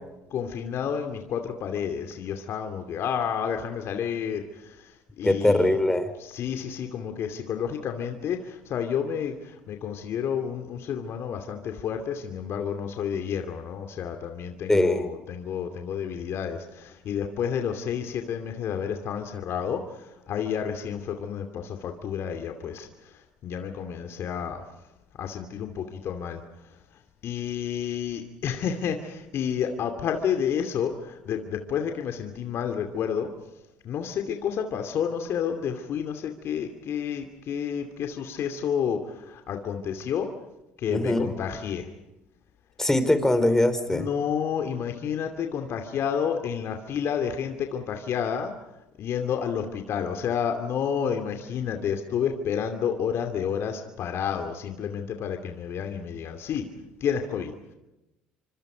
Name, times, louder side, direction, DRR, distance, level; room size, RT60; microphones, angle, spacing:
voice 1, 0.3-5.8 6.2-24.6 25.2-26.8 27.2-33.3 33.8-40.3 40.8-41.9 43.9-48.5 49.0-56.7 57.0-57.5, left 7 dB, 55° left, 5 dB, 2.6 m, -30 dB
voice 2, 5.2-6.1 14.7-15.0 40.9-41.3 42.8-44.1, left 1 dB, 10° left, 10 dB, 4.3 m, -22 dB
29.0 x 25.5 x 5.1 m, 0.95 s
hypercardioid pair, 65°, 5 cm